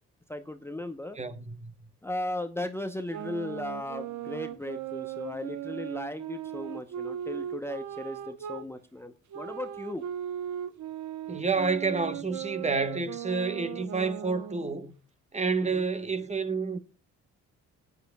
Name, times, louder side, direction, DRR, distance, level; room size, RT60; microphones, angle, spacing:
voice 1, 0.3-1.2 2.0-10.0 15.6-15.9, left 1 dB, 10° left, 0.8 m, -36 dB
voice 2, 1.2-1.7 11.3-14.9 15.3-16.8, right 4 dB, 25° right, 1.1 m, -29 dB
sound 1, 3.1-8.7 9.3-14.8, right 10 dB, 70° right, 0.9 m, -38 dB
20.5 x 8.5 x 2.3 m
cardioid pair, 90°, 30 cm